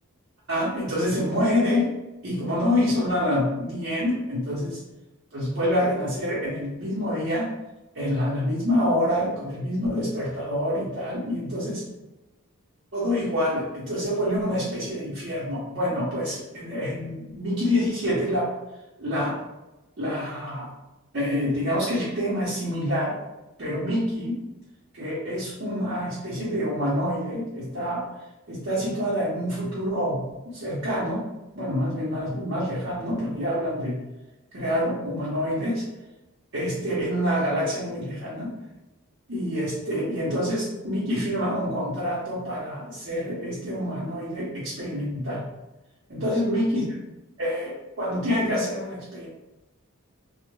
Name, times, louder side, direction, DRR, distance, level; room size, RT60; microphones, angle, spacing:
voice 1, 0.5-1.9 2.2-4.8 5.3-7.5 7.9-11.8 12.9-18.5 19.0-19.4 20.0-20.7 21.1-23.2 23.6-24.4 24.9-28.1 28.5-31.2 31.5-34.0 34.5-35.8 36.5-38.5 39.3-45.5 46.1-46.9 47.4-49.3, equal, 55° right, -9 dB, 0.7 m, -27 dB
2.2 x 2.0 x 3.1 m, 1.0 s
head